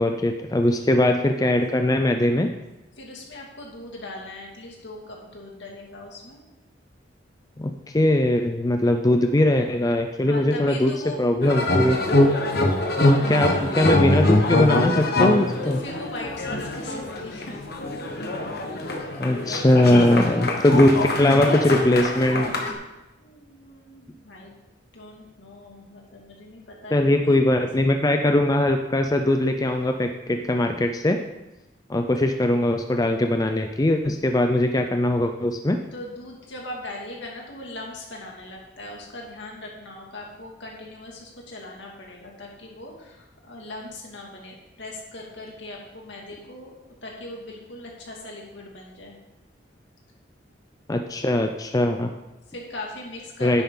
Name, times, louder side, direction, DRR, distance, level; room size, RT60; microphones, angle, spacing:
voice 1, 0.0-2.5 7.6-10.9 11.2-12.0 13.0-15.8 19.2-22.5 26.9-31.2 31.9-35.8 50.9-52.1 53.4-53.6, left 1 dB, 20° left, 5 dB, 0.5 m, -21 dB
voice 2, 3.0-6.4 10.2-11.3 13.1-14.0 15.6-17.6 23.2-24.6 24.9-27.4 35.9-46.7 47.0-49.2 52.0-53.6, left 1 dB, 70° left, -1 dB, 2.3 m, -40 dB
sound 1, 11.4-22.7, left 2 dB, 55° left, 1.3 m, -24 dB
10.0 x 9.0 x 3.9 m, 0.99 s
head